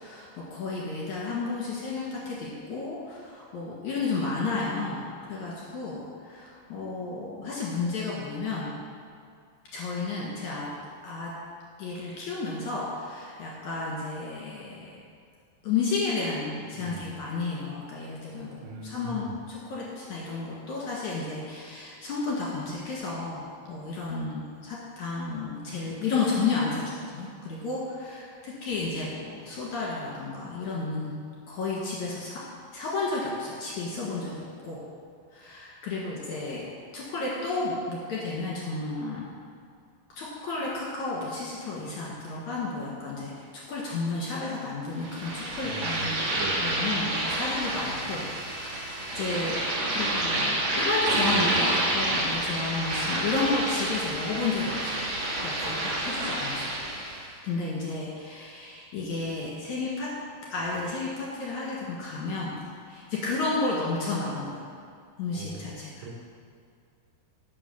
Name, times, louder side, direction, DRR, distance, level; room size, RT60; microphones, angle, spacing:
voice 1, 0.0-8.7 9.7-10.7 11.0-11.3 11.8-14.9 15.6-31.1 31.5-32.4 32.7-34.8 35.3-36.7 36.9-39.3 40.1-46.2 46.6-48.2 48.5-49.6 49.9-55.1 55.4-56.7 57.4-60.1 60.5-62.6 62.9-64.6 65.2-66.0, left 3 dB, 55° left, -5 dB, 2.4 m, -32 dB
voice 2, 16.7-17.1 18.6-19.4 45.6-46.7 65.3-66.1, right 3 dB, 75° right, 1 dB, 2.9 m, -40 dB
sound 1, 45.0-57.3, right 1 dB, 50° right, 2.3 m, -29 dB
11.0 x 5.6 x 6.9 m, 2.3 s
omnidirectional pair, 4.9 m